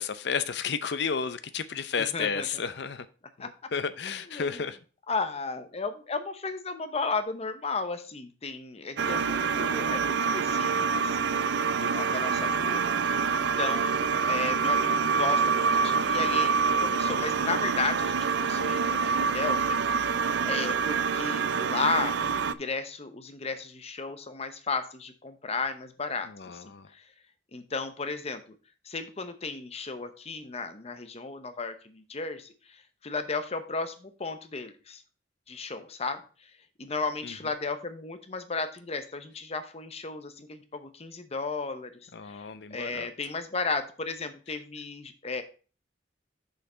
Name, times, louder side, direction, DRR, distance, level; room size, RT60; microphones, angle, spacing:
voice 1, 0.0-3.1 3.4-4.8 26.3-26.9 37.2-37.3 42.1-43.1, left 6 dB, 65° left, 12 dB, 0.6 m, -32 dB
voice 2, 2.0-2.5 3.4-3.5 4.3-4.6 5.1-26.6 26.9-27.0 27.5-28.5 28.8-35.0 35.5-36.5 36.8-41.9 42.3-42.5 42.7-45.4, left 4 dB, 35° left, 9 dB, 0.8 m, -34 dB
sound 1, 9.0-22.5, right 5 dB, 70° right, 0.4 m, -26 dB
6.5 x 5.7 x 4.3 m, 0.36 s
head